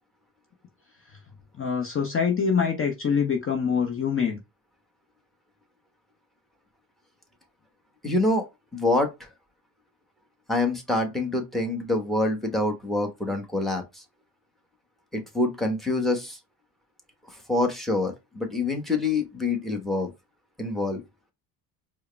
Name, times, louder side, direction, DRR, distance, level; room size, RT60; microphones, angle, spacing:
voice 1, 1.6-4.4, left 6 dB, 30° left, 0.8 m, -25 dB
voice 2, 8.0-8.4 8.7-9.3 10.5-14.0 15.1-16.4 17.3-20.1 20.6-21.0, left 2 dB, ahead, 1.2 m, -26 dB
4.6 x 2.2 x 3.3 m
cardioid pair, 95°, 41 cm